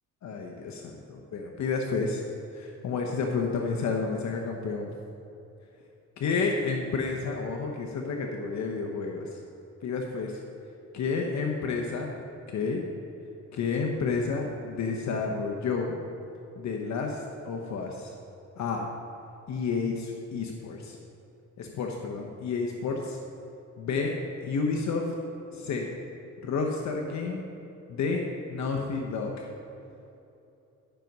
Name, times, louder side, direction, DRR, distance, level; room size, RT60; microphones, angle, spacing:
voice 1, 0.2-2.2 2.5-4.9 6.2-9.4 9.8-10.4 10.9-12.8 13.5-16.0 16.6-18.1 18.6-18.8 19.5-21.0 21.6-23.2 23.8-24.1 24.4-25.1 25.5-25.9 26.4-27.4 27.9-29.5, left 4 dB, 65° left, 1 dB, 1.0 m, -30 dB
12.5 x 6.0 x 5.4 m, 2.9 s
cardioid pair, 90°, 30 cm